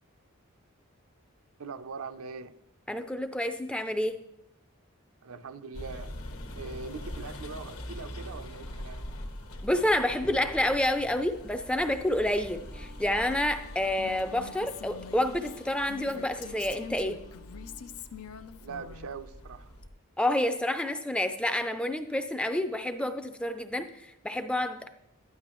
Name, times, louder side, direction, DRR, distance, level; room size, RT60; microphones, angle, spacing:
voice 1, 1.6-2.6 5.2-6.2 6.5-9.0 18.6-19.7, right 4 dB, 75° right, 10 dB, 0.6 m, -41 dB
voice 2, 2.9-4.2 9.6-17.2 20.2-24.9, left 1 dB, 5° left, 8 dB, 0.4 m, -29 dB
sound 1, 5.7-19.9, left 1 dB, 70° left, 1.2 m, -43 dB
Wind instrument woodwind instrument, 12.5-17.9, left 4 dB, 45° left, 0.8 m, -54 dB
Female speech woman speaking, 14.0-19.1, left 7 dB, 85° left, 0.5 m, -45 dB
12.0 x 10.5 x 3.1 m, 0.83 s
head